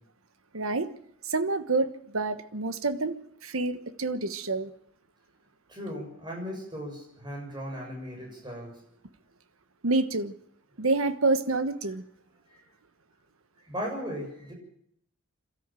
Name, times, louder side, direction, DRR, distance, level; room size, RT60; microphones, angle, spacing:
voice 1, 0.5-0.9 1.3-3.2 3.4-4.7 9.8-10.3 10.8-12.0, right 3 dB, 75° right, 11 dB, 1.3 m, -27 dB
voice 2, 5.7-8.8 12.5-12.6 13.6-14.5, equal, 20° right, 0 dB, 7.0 m, -37 dB
27.5 x 13.0 x 7.7 m, 0.72 s
head